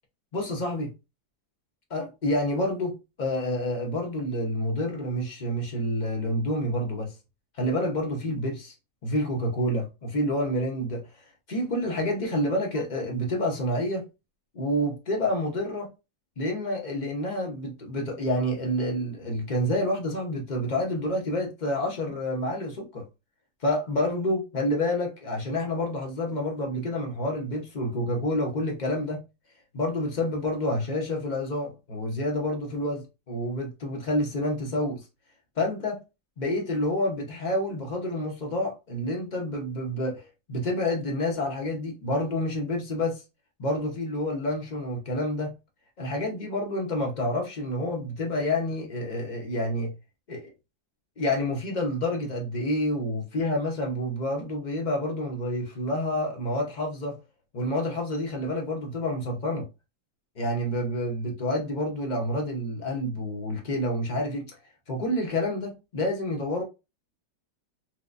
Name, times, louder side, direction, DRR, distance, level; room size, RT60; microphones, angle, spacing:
voice 1, 0.3-0.9 1.9-7.1 7.6-8.7 9.0-11.0 11.5-14.0 14.5-15.9 16.4-23.0 23.6-29.2 29.7-35.0 35.6-36.0 36.4-43.2 43.6-45.5 46.0-49.9 50.3-50.5 51.2-57.2 57.5-59.7 60.4-64.5 64.9-66.6, left 1 dB, 60° left, 0.4 m, -28 dB
4.5 x 2.1 x 2.4 m
omnidirectional pair, 2.0 m